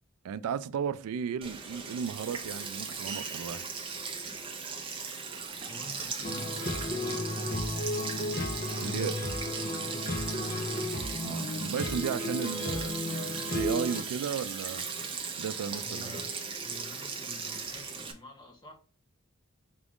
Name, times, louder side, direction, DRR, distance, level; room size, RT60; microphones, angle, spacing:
voice 1, 0.2-3.7 8.8-9.1 11.2-14.9 15.4-16.3, right 7 dB, 85° right, 0.3 m, -35 dB
Sink (filling or washing), 1.4-18.1, right 5 dB, 25° right, 0.5 m, -38 dB
voice 2, 5.7-7.7 8.8-11.0 15.8-16.3 16.6-18.8, left 2 dB, 20° left, 0.9 m, -48 dB
sound 1, 6.2-14.0, left 1 dB, 40° left, 0.6 m, -34 dB
5.0 x 2.5 x 3.5 m
head